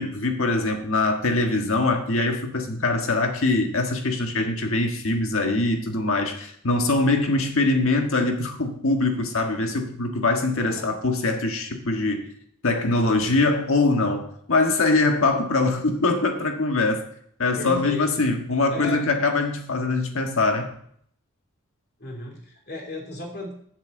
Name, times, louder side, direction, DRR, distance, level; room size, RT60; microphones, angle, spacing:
voice 1, 0.0-12.2 12.6-17.0 17.4-20.7, left 2 dB, 70° left, 4 dB, 1.6 m, -23 dB
voice 2, 10.6-10.9 17.5-18.1 18.7-19.1 22.0-23.5, left 2 dB, 50° left, -1 dB, 2.7 m, -34 dB
7.3 x 6.5 x 7.6 m, 0.65 s
head